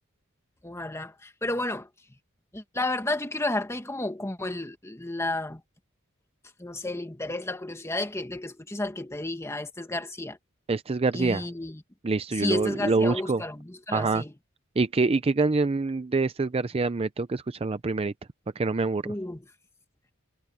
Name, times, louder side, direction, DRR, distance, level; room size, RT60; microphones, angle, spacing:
voice 1, 0.6-1.9 2.5-5.6 6.6-10.4 11.1-11.8 12.4-14.3 19.0-19.4, left 2 dB, 15° left, 1.7 m, -32 dB
voice 2, 10.7-11.5 12.0-13.4 13.9-14.2 14.8-18.1 18.6-19.0, right 3 dB, 25° right, 0.5 m, -25 dB
head